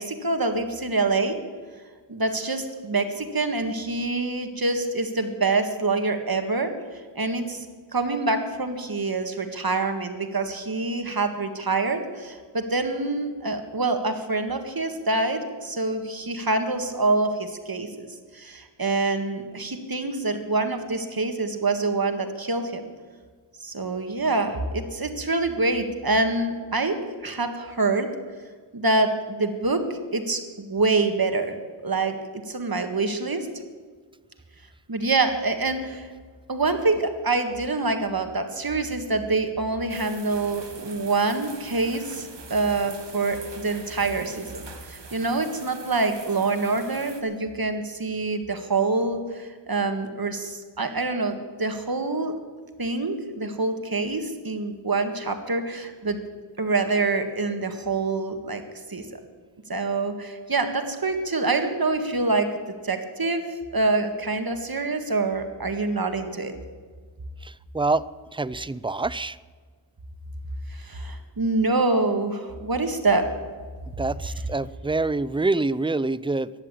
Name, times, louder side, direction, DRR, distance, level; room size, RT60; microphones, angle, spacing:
voice 1, 0.0-1.4 2.1-6.7 7.2-7.7 7.9-18.1 18.3-22.8 23.6-27.0 27.2-28.1 28.7-31.5 31.8-32.1 32.5-33.5 34.9-36.1 36.5-52.4 52.8-56.2 56.6-58.6 58.9-59.2 59.7-62.5 62.8-63.4 63.7-66.5 70.7-73.3, right 3 dB, 50° right, 7 dB, 1.8 m, -26 dB
sound 1, 39.9-47.2, right 4 dB, 65° right, 1.8 m, -44 dB
voice 2, 67.4-68.0 68.3-69.4 74.0-76.5, right 3 dB, 10° right, 17 dB, 0.4 m, -26 dB
15.0 x 11.0 x 8.5 m, 1.5 s
wide cardioid pair, 70°, 45 cm